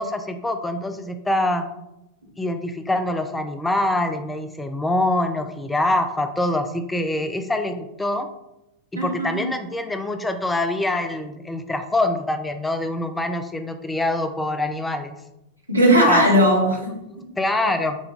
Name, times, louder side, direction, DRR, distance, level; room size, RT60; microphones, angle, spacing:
voice 1, 0.0-1.7 2.4-8.3 8.9-15.2 16.1-16.2 17.1-18.0, left 1 dB, 10° left, 8 dB, 0.3 m, -25 dB
voice 2, 8.9-9.4 15.7-17.3, equal, 85° right, -2 dB, 0.9 m, -18 dB
4.9 x 2.2 x 3.5 m, 0.89 s
figure-of-eight pair, 90°, 0 cm